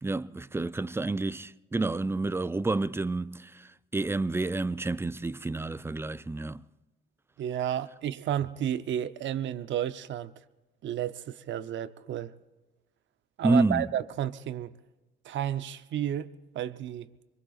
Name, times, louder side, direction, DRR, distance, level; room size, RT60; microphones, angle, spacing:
voice 1, 0.0-6.6 13.4-13.9, right 2 dB, 10° right, 0.4 m, -29 dB
voice 2, 7.4-10.3 10.8-12.3 13.4-14.7 15.2-17.1, right 10 dB, 70° right, 0.8 m, -32 dB
25.0 x 23.0 x 2.5 m
cardioid pair, 90°, 20 cm